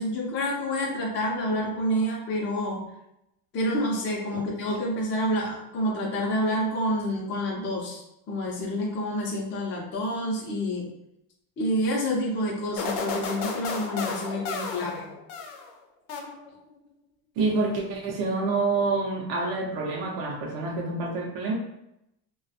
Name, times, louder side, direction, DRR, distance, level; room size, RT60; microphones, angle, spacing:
voice 1, 0.0-2.9 3.5-10.9 11.6-15.1, equal, 25° left, -3 dB, 0.5 m, -28 dB
sound 1, 12.8-15.7 16.1-16.7, left 4 dB, 90° left, 0.7 m, -33 dB
voice 2, 17.4-21.5, right 3 dB, 60° right, -2 dB, 0.6 m, -27 dB
2.3 x 2.2 x 2.6 m, 0.82 s
cardioid pair, 125°, 45 cm